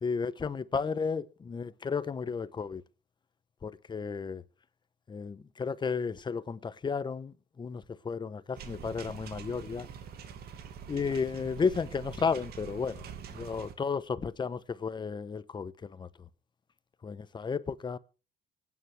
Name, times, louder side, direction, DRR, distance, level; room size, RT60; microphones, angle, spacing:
voice 1, 0.0-2.8 3.6-4.4 5.1-9.9 10.9-13.0 13.3-16.1 17.0-18.0, left 5 dB, 25° left, 1.0 m, -33 dB
sound 1, 8.5-13.7, right 7 dB, 70° right, 2.4 m, -45 dB
26.0 x 9.6 x 3.4 m
cardioid pair, 110°, 17 cm